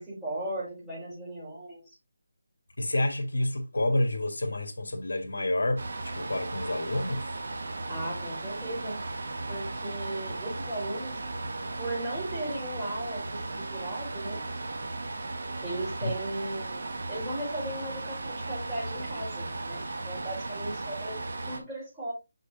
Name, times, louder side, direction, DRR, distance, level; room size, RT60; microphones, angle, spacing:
voice 1, 0.0-1.8 7.9-9.0 9.5-11.2 11.8-14.4 15.6-22.1, right 1 dB, 5° right, 5.1 m, -37 dB
voice 2, 2.8-7.4 16.0-16.1, left 1 dB, 85° left, 2.0 m, -29 dB
sound 1, 5.8-21.6, right 2 dB, 55° right, 1.7 m, -36 dB
6.7 x 6.3 x 2.8 m
figure-of-eight pair, 175°, 0 cm